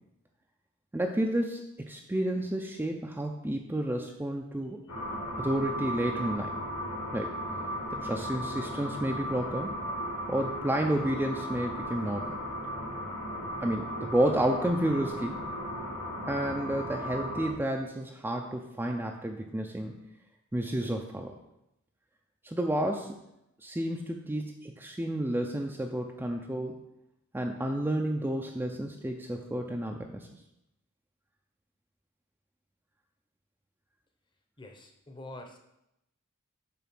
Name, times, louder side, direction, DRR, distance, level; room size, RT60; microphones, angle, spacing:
voice 1, 0.9-4.8 5.4-6.6 7.1-7.4 7.9-9.8 10.3-12.4 13.6-15.4 16.3-19.9 20.5-21.3 22.4-23.2 23.6-26.8 27.3-30.3, right 1 dB, 10° right, 2 dB, 0.4 m, -31 dB
sound 1, 4.9-17.5, equal, 75° left, 2.0 m, -36 dB
voice 2, 34.6-35.6, left 2 dB, 20° left, 4 dB, 0.8 m, -45 dB
7.1 x 3.8 x 5.9 m, 0.84 s
head